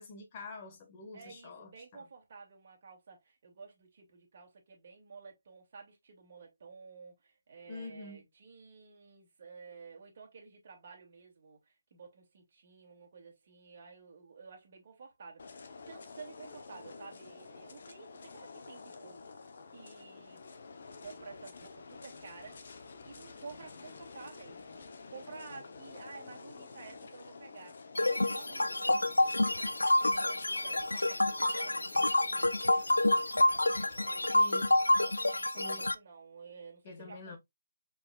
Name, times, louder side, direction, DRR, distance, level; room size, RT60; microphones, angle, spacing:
voice 1, 0.0-2.0 7.7-8.2 34.3-34.8 35.6-35.9 36.8-37.4, left 3 dB, 30° left, 1.6 m, -46 dB
voice 2, 1.1-15.6 15.9-19.3 19.7-20.6 21.0-22.7 23.0-29.0 29.3-32.7 33.0-33.3 33.8-37.4, right 5 dB, 45° right, 2.4 m, -52 dB
chuze v ulici s frekventovanou dopravou, 15.4-34.3, left 4 dB, 55° left, 0.9 m, -50 dB
sound 1, 28.0-35.9, left 1 dB, 90° left, 0.4 m, -28 dB
4.7 x 4.0 x 2.4 m
figure-of-eight pair, 150°, 0 cm